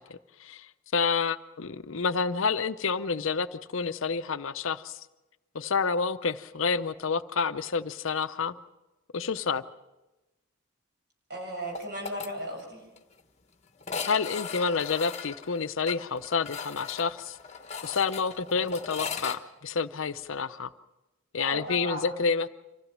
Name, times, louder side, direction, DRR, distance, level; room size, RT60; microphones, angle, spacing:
voice 1, 0.0-5.0 5.5-8.6 9.1-9.6 14.0-17.4 17.8-20.7 21.3-22.5, left 5 dB, 60° left, 12 dB, 0.7 m, -29 dB
voice 2, 11.3-12.9 21.4-22.2, right 1 dB, 50° right, 0 dB, 7.3 m, -36 dB
sound 1, 11.7-12.3 12.6-12.7 13.0-13.1 13.8-19.4, left 6 dB, 30° left, 1.2 m, -38 dB
25.5 x 16.0 x 7.4 m, 1.0 s
head